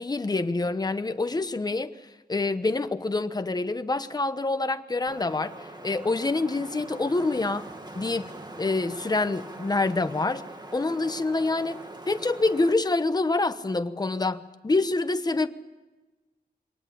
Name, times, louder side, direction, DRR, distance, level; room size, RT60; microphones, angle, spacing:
voice 1, 0.0-1.9 2.3-7.7 7.9-8.3 8.6-10.4 10.7-15.5, left 3 dB, 25° left, 10 dB, 1.0 m, -26 dB
Wind, 5.1-12.7, right 2 dB, 25° right, 1.9 m, -43 dB
24.0 x 19.0 x 8.6 m, 1.2 s
wide cardioid pair, 120°, 17 cm